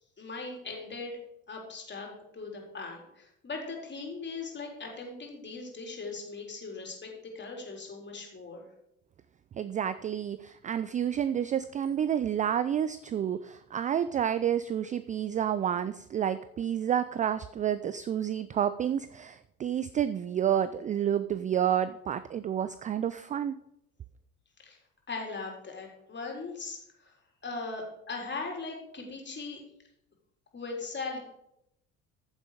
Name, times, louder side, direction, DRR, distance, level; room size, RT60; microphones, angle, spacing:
voice 1, 0.2-1.2 1.5-2.1 2.3-8.6 24.6-24.8 25.1-27.1 27.4-29.6 30.5-31.2, left 3 dB, 25° left, 1 dB, 4.0 m, -39 dB
voice 2, 9.5-23.5, right 9 dB, 20° right, 14 dB, 0.4 m, -29 dB
14.5 x 7.3 x 5.1 m, 0.78 s
figure-of-eight pair, 60°, 43 cm